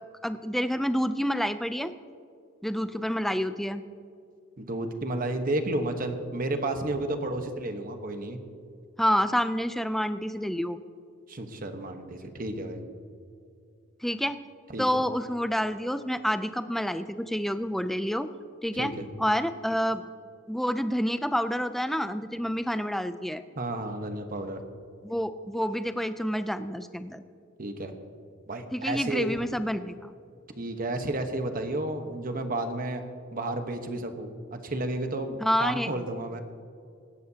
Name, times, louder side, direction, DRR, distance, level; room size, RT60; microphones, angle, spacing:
voice 1, 0.2-1.9 2.6-3.8 9.0-10.8 14.0-14.4 14.8-18.3 18.6-18.9 19.2-20.0 20.5-23.4 25.0-27.2 28.7-30.1 35.4-35.9, equal, ahead, 11 dB, 0.5 m, -28 dB
voice 2, 4.6-8.4 11.3-12.8 14.7-14.9 18.7-19.1 23.6-24.6 27.6-27.9 28.5-29.3 30.6-33.0 33.3-36.4, right 2 dB, 45° right, 6 dB, 1.2 m, -32 dB
24.5 x 11.5 x 2.9 m, 2.5 s
head